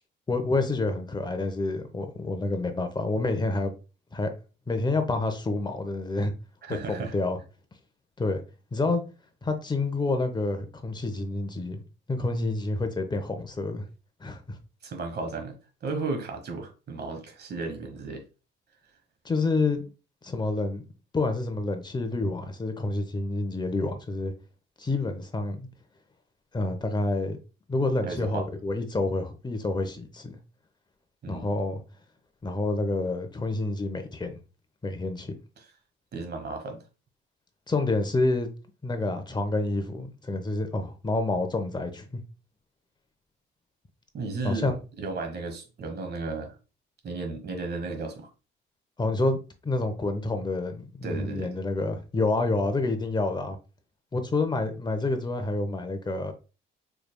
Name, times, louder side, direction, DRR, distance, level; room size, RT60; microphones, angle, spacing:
voice 1, 0.3-3.7 4.1-4.3 4.7-6.3 6.7-7.4 8.2-8.4 8.7-9.0 9.4-11.8 12.1-13.8 14.2-14.6 19.2-19.8 20.2-20.8 21.1-24.3 24.8-25.7 26.5-27.4 27.7-30.4 31.3-31.8 32.4-34.4 34.8-35.3 37.7-38.5 38.8-42.1 44.4-44.8 49.0-49.4 49.6-53.6 54.1-56.3, left 2 dB, 20° left, 0.8 m, -28 dB
voice 2, 6.6-7.1 14.8-15.6 15.8-18.2 28.0-28.5 31.2-31.6 36.1-36.8 44.1-44.7 45.0-46.6 47.0-48.3 51.0-51.5, right 3 dB, 55° right, 1.2 m, -34 dB
4.7 x 3.3 x 2.2 m
cardioid pair, 90°, 20 cm